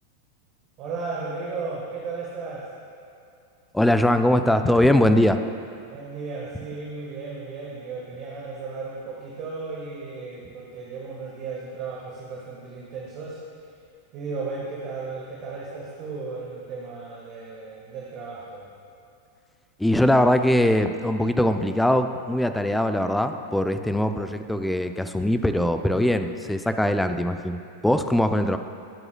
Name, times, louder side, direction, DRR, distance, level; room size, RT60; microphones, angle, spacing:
voice 1, 0.8-2.7 5.8-13.4 14.1-18.7, right 4 dB, 35° right, -4 dB, 1.5 m, -35 dB
voice 2, 3.7-5.4 19.8-27.6 27.8-28.6, left 1 dB, 5° left, 8 dB, 0.5 m, -21 dB
20.0 x 7.8 x 2.3 m, 2.5 s
figure-of-eight pair, 90°, 0 cm